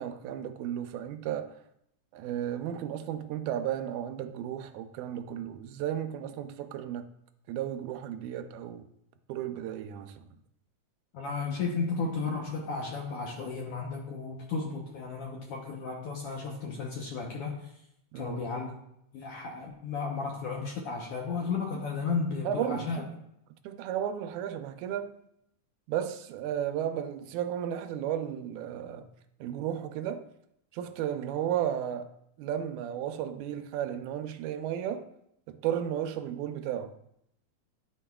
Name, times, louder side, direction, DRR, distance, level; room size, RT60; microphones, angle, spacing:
voice 1, 0.0-1.6 2.1-7.1 7.5-8.9 9.3-10.3 18.1-18.4 22.4-23.1 23.6-25.2 25.9-29.1 29.4-30.3 30.7-32.1 32.4-35.1 35.5-37.0, right 10 dB, 85° right, 2.0 m, -34 dB
voice 2, 11.1-17.7 18.1-18.7 19.1-23.0, left 4 dB, 70° left, 1.5 m, -34 dB
11.5 x 4.6 x 2.2 m
omnidirectional pair, 3.4 m